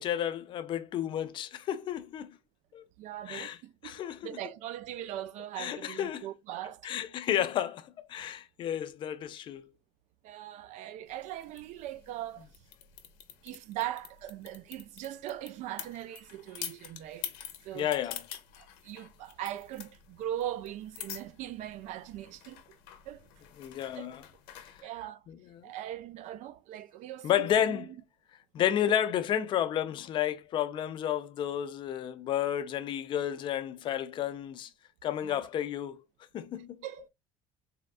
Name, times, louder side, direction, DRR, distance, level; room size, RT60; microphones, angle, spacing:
voice 1, 0.0-2.4 2.7-2.8 3.3-3.6 3.8-4.4 5.6-6.3 6.8-9.7 17.7-18.2 23.6-24.2 24.6-24.7 25.3-25.7 27.2-27.9 28.5-34.7 35.0-36.0 36.3-36.8, left 10 dB, 35° left, 0.4 m, -31 dB
voice 2, 3.0-6.9 10.2-12.5 13.4-17.3 17.6-17.9 18.8-22.8 23.1-23.3 23.9-24.1 24.6-25.2 25.6-27.5 27.7-27.8 35.2-35.4 36.8-37.1, right 12 dB, 50° right, 0.4 m, -40 dB
sound 1, 11.1-24.8, left 10 dB, 85° left, 0.7 m, -47 dB
3.5 x 2.3 x 2.4 m
cardioid pair, 160°, 15 cm